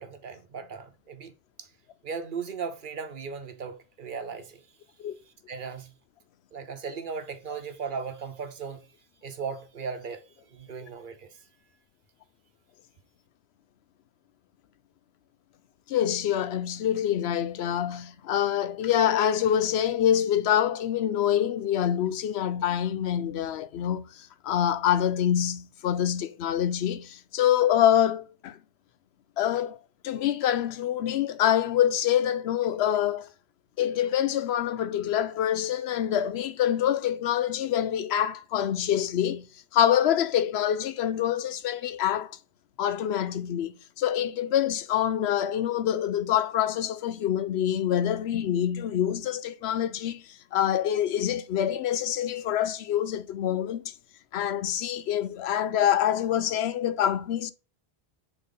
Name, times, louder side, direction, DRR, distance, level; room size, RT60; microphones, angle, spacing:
voice 1, 0.0-1.3 1.6-1.7 2.0-4.6 5.3-5.9 6.5-8.9 9.2-11.5, right 5 dB, 55° right, 0.9 m, -37 dB
voice 2, 15.9-28.6 29.4-29.8 30.0-33.3 33.8-42.4 42.8-53.9 54.3-57.5, left 10 dB, 80° left, 0.8 m, -26 dB
6.9 x 4.0 x 3.9 m
omnidirectional pair, 1.1 m